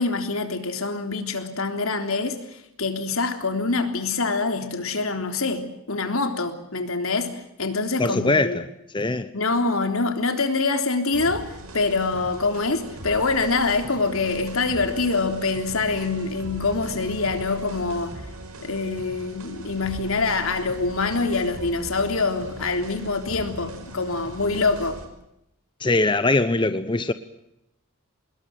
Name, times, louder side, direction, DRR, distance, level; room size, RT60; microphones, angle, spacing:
voice 1, 0.0-8.6 9.3-18.1 18.6-25.0, left 3 dB, 75° left, 3.5 m, -25 dB
voice 2, 8.0-8.7 8.9-9.3 25.8-27.1, left 2 dB, 20° left, 0.9 m, -21 dB
sound 1, 11.1-25.1, right 1 dB, 85° right, 5.8 m, -39 dB
26.0 x 21.0 x 7.7 m
head